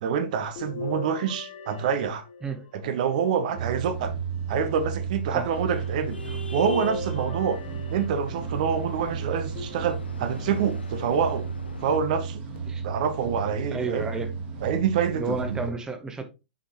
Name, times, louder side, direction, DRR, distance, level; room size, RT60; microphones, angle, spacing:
voice 1, 0.0-2.2 2.7-4.1 4.5-7.6 7.9-11.5 11.8-12.4 12.8-14.0 14.6-15.4, right 7 dB, 50° right, 0.8 m, -26 dB
sound 1, 0.6-2.8 3.6-4.6 6.6-8.6 9.6-10.4 11.1-11.2 12.6-12.7, left 4 dB, 40° left, 1.5 m, -39 dB
sound 2, 3.5-15.7, right 5 dB, 25° right, 2.0 m, -33 dB
sound 3, 5.2-12.0, left 3 dB, 75° left, 1.0 m, -42 dB
voice 2, 13.7-14.3 15.1-16.2, right 4 dB, 10° right, 1.0 m, -31 dB
6.3 x 5.5 x 3.0 m
figure-of-eight pair, 105°, 6 cm